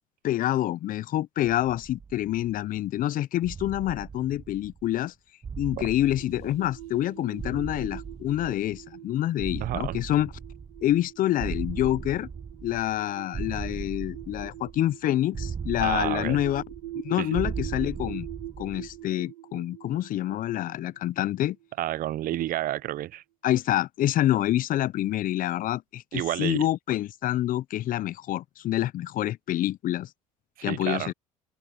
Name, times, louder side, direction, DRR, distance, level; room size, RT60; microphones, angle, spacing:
voice 1, 0.2-5.1 5.6-10.3 10.8-12.3 12.6-16.6 17.0-18.3 18.6-21.6 23.4-30.1 30.6-31.1, left 13 dB, 50° left, 0.7 m, -27 dB
sound 1, 1.4-2.8 3.4-5.0 5.4-7.1 7.4-9.0 9.4-11.0 11.4-13.0 13.3-14.9 15.3-17.0 17.3-19.0, right 6 dB, 30° right, 1.6 m, -38 dB
sound 2, 5.9-22.2, right 14 dB, 85° right, 2.6 m, -44 dB
voice 2, 9.6-10.0 15.8-16.4 17.2-17.4 21.8-23.2 26.1-26.7 30.6-31.1, right 14 dB, 55° right, 0.7 m, -30 dB
hypercardioid pair, 70°, 18 cm